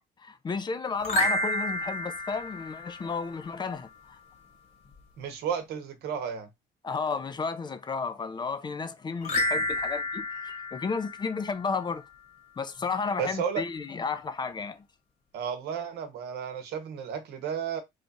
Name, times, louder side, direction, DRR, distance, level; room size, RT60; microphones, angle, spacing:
voice 1, 0.2-4.2 6.8-12.0 12.6-14.8, left 5 dB, 25° left, 0.4 m, -33 dB
sound 1, 1.0-3.5 9.2-11.8, left 1 dB, 45° left, 1.2 m, -30 dB
voice 2, 5.2-6.5 13.2-13.6 15.3-17.8, right 7 dB, 80° right, 0.9 m, -33 dB
3.2 x 2.4 x 4.0 m
cardioid pair, 110°, 17 cm